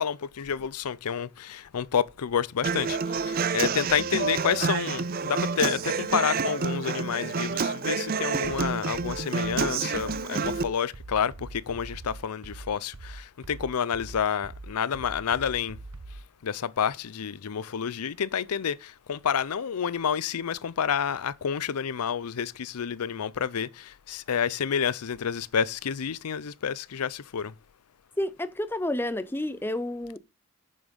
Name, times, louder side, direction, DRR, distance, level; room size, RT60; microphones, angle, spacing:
voice 1, 0.0-15.8 16.4-27.5, left 7 dB, 90° left, 0.5 m, -29 dB
Human voice / Acoustic guitar, 2.6-10.6, right 5 dB, 40° right, 0.5 m, -28 dB
sound 1, 8.4-16.3, right 2 dB, 75° right, 1.0 m, -43 dB
voice 2, 28.2-30.2, left 1 dB, 10° left, 0.5 m, -30 dB
7.2 x 6.9 x 5.3 m
head